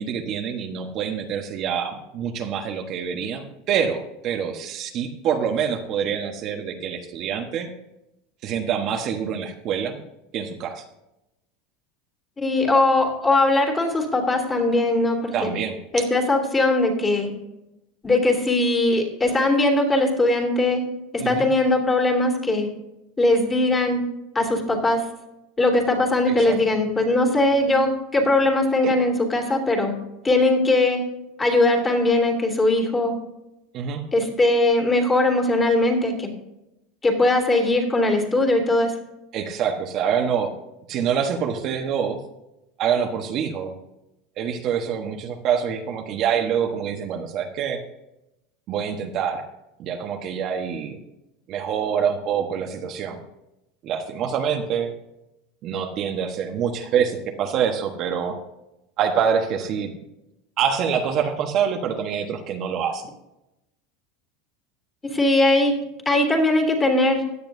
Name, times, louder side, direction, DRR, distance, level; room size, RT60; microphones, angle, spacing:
voice 1, 0.0-7.7 8.4-10.0 10.3-10.8 15.3-16.0 21.2-21.5 26.3-26.8 28.8-28.9 33.7-34.0 39.3-40.5 40.9-42.2 42.8-43.7 44.4-47.8 48.7-49.4 49.8-51.0 51.5-53.2 53.8-54.9 55.6-58.4 59.0-59.9 60.6-63.0, right 7 dB, 45° right, 3 dB, 1.2 m, -26 dB
voice 2, 12.4-15.5 15.9-17.3 18.0-20.8 21.1-22.7 23.2-24.0 24.3-25.0 25.6-29.9 30.2-31.0 31.4-33.1 34.1-36.3 37.0-38.9 65.1-65.8 66.0-67.2, left 2 dB, 15° left, 2 dB, 3.0 m, -20 dB
16.5 x 10.5 x 2.7 m, 0.91 s
supercardioid pair, 130°, 0 cm